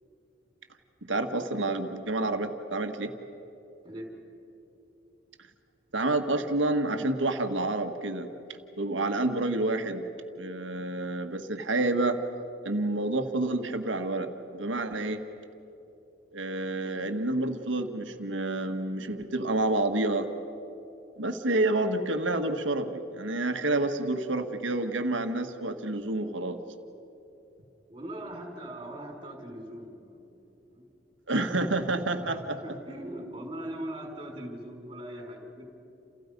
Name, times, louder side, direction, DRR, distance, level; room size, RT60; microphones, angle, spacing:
voice 1, 1.0-3.1 5.9-8.3 8.8-10.0 10.4-12.2 12.6-15.2 16.3-20.3 21.2-26.6 31.3-32.6, right 2 dB, 80° right, 6 dB, 1.7 m, -29 dB
voice 2, 27.9-30.9 32.2-35.7, right 1 dB, 25° right, 1 dB, 5.2 m, -41 dB
29.5 x 29.0 x 5.4 m, 2.9 s
head